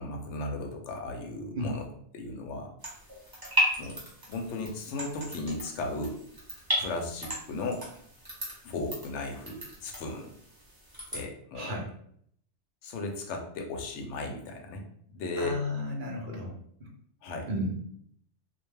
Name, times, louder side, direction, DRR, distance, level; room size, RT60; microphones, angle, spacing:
voice 1, 0.0-1.9 2.1-2.7 3.8-4.0 4.3-6.2 6.8-7.8 8.6-10.3 11.1-11.7 12.8-14.8 15.1-15.6 17.2-17.5, left 2 dB, 80° left, 2 dB, 0.9 m, -36 dB
sound 1, 2.8-11.2, equal, 20° right, 0.8 m, -35 dB
voice 2, 11.5-11.9 15.4-16.5 16.8-16.9 17.5-17.8, left 1 dB, 55° right, 0 dB, 0.7 m, -33 dB
2.4 x 2.2 x 3.2 m, 0.66 s
omnidirectional pair, 1.2 m